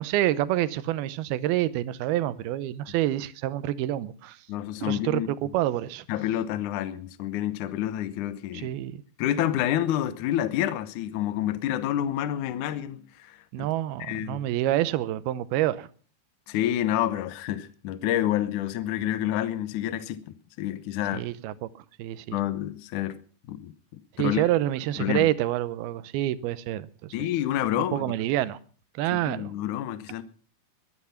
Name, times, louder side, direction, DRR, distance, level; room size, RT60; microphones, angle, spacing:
voice 1, 0.0-4.4 4.8-6.1 8.5-9.0 13.5-15.9 21.1-21.7 22.0-22.4 24.2-27.1 27.9-28.6 29.0-29.5, right 14 dB, 75° right, 2.6 m, -27 dB
voice 2, 4.5-5.3 6.1-8.7 9.2-13.7 14.0-14.4 16.5-20.2 20.6-21.2 22.3-23.2 23.5-24.4 25.0-25.3 27.1-28.1 29.1-30.2, left 12 dB, 70° left, 2.0 m, -28 dB
22.0 x 9.7 x 5.7 m
omnidirectional pair, 4.7 m